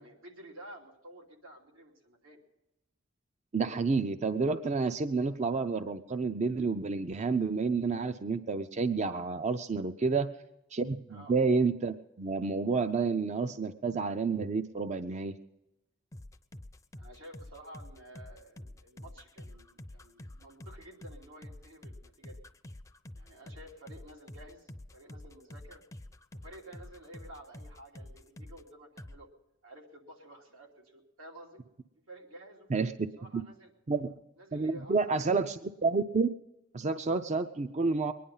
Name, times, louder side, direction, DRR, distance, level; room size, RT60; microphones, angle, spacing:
voice 1, 0.0-2.4 10.0-10.1 11.1-11.4 17.0-22.4 23.1-25.8 26.4-29.3 29.6-31.6 32.1-33.7 34.4-35.3, right 1 dB, 90° right, 0 dB, 2.9 m, -52 dB
voice 2, 3.5-10.3 10.7-15.4 32.7-32.9 33.3-33.4 33.9-34.1 34.5-36.3 36.7-38.1, right 4 dB, 35° right, 10 dB, 0.5 m, -29 dB
sound 1, 16.1-28.7 29.0-29.2, left 1 dB, 15° left, 0.5 m, -47 dB
21.5 x 10.0 x 5.5 m, 0.93 s
head